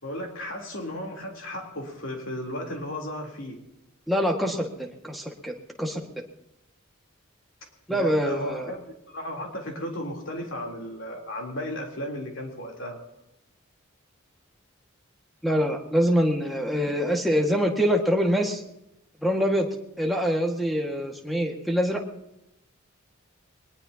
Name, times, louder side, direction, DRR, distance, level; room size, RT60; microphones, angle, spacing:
voice 1, 0.0-3.6 7.9-13.0, equal, 65° left, 1 dB, 3.5 m, -34 dB
voice 2, 4.1-5.5 5.8-6.0 7.9-8.7 15.4-18.6 19.2-19.7 20.0-22.0, equal, ahead, 2 dB, 1.8 m, -25 dB
21.5 x 20.0 x 2.9 m, 0.86 s
head